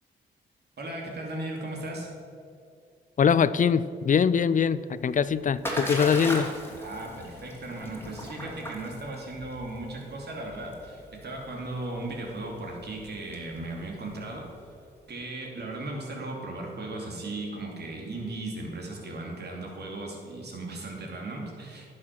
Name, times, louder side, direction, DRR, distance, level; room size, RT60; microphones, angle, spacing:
voice 1, 0.8-2.1 6.8-14.5 15.1-21.9, right 2 dB, 55° right, -1 dB, 2.7 m, -37 dB
voice 2, 3.2-6.5, left 7 dB, 40° left, 16 dB, 0.5 m, -23 dB
Splash splatter, 4.9-14.8, equal, 10° left, 2.7 m, -38 dB
11.0 x 6.3 x 6.0 m, 2.4 s
supercardioid pair, 55°, 20 cm